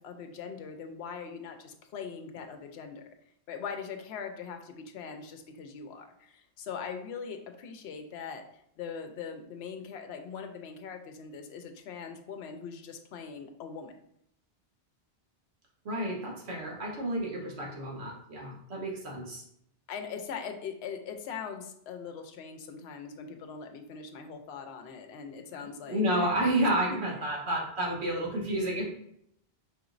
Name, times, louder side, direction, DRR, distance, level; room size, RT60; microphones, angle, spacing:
voice 1, 0.0-3.0 3.5-8.4 8.8-13.9 19.9-26.0, left 6 dB, 75° left, 5 dB, 0.8 m, -41 dB
voice 2, 15.8-19.4 25.5-28.8, right 1 dB, 75° right, -2 dB, 1.3 m, -30 dB
4.9 x 2.9 x 2.5 m, 0.72 s
omnidirectional pair, 1.1 m